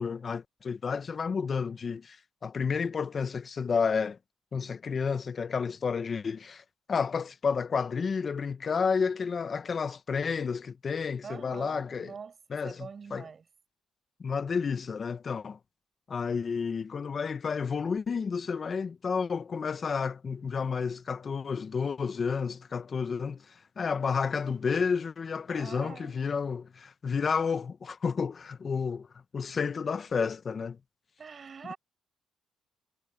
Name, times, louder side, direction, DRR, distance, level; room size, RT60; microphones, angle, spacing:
voice 1, 0.0-4.2 4.5-12.1 12.5-13.3 14.2-15.6 16.1-29.1 29.3-30.8, left 5 dB, 45° left, 0.7 m, -31 dB
voice 2, 11.2-12.4 12.6-13.4 25.5-26.2 31.2-31.8, right 5 dB, 40° right, 7.5 m, -44 dB
cardioid pair, 90°, 0 cm